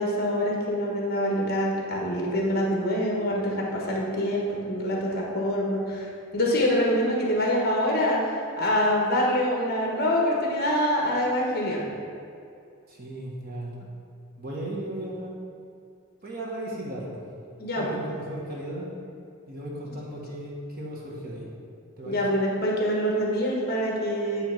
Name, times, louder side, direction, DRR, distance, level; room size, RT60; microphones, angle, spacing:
voice 1, 0.0-11.9 17.6-17.9 22.0-24.4, equal, 45° left, -2 dB, 1.3 m, -25 dB
voice 2, 12.9-13.7 14.4-15.4 16.2-17.2 17.7-18.9 19.5-21.5 22.0-22.3, right 1 dB, 45° right, -3 dB, 1.3 m, -36 dB
9.1 x 3.5 x 5.8 m, 2.4 s
head